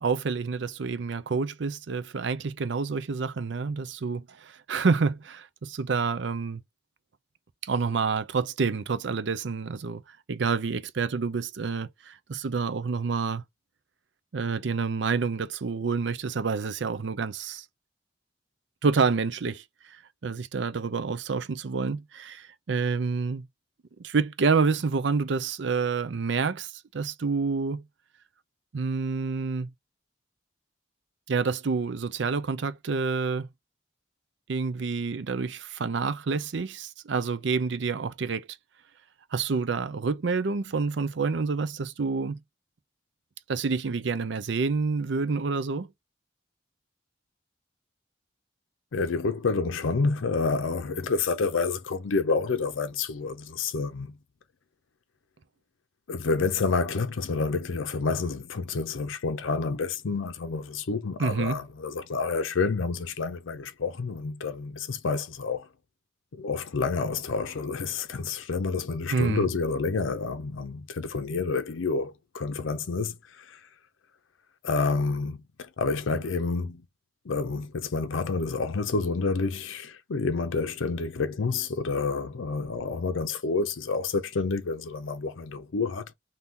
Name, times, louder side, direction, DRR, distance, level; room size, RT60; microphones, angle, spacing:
voice 1, 0.0-6.6 7.6-13.4 14.3-17.7 18.8-23.4 24.0-27.8 28.7-29.7 31.3-33.5 34.5-38.5 39.3-42.4 43.5-45.9 61.2-61.6 69.1-69.5, right 4 dB, 65° right, 0.5 m, -28 dB
voice 2, 48.9-54.1 56.1-65.7 66.3-73.6 74.6-76.8 77.3-86.1, left 4 dB, 80° left, 0.5 m, -29 dB
3.6 x 2.8 x 2.7 m
head